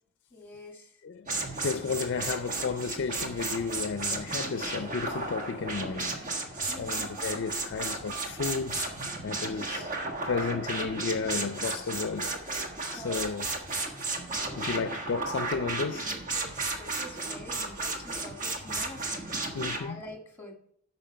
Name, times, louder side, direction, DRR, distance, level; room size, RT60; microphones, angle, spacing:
voice 1, 0.3-1.0 6.7-7.1 12.9-13.3 15.9-19.5 19.7-20.6, equal, 10° left, 1.7 m, -46 dB
voice 2, 1.0-6.2 6.8-8.9 9.2-9.9 10.2-12.6 12.9-13.5 14.6-16.1 19.5-20.0, left 5 dB, 55° left, 0.4 m, -33 dB
sound 1, 1.3-19.8, right 3 dB, 40° right, 1.4 m, -34 dB
8.8 x 5.8 x 5.5 m
head